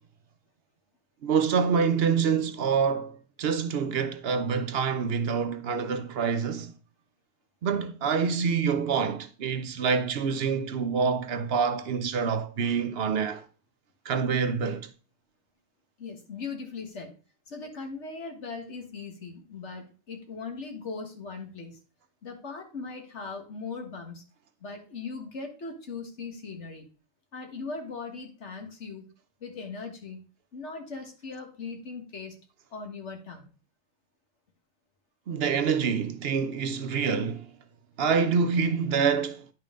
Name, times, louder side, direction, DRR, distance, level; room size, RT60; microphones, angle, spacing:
voice 1, 1.2-6.7 7.6-13.4 14.1-14.9 35.3-37.5 38.0-39.4, right 6 dB, 65° right, 0.9 m, -26 dB
voice 2, 16.0-17.1 17.5-21.8 22.2-24.2 24.6-26.8 27.3-29.1 29.4-30.3 30.5-32.4 32.7-33.5, left 4 dB, 80° left, 1.9 m, -39 dB
9.9 x 5.4 x 3.7 m
omnidirectional pair, 1.2 m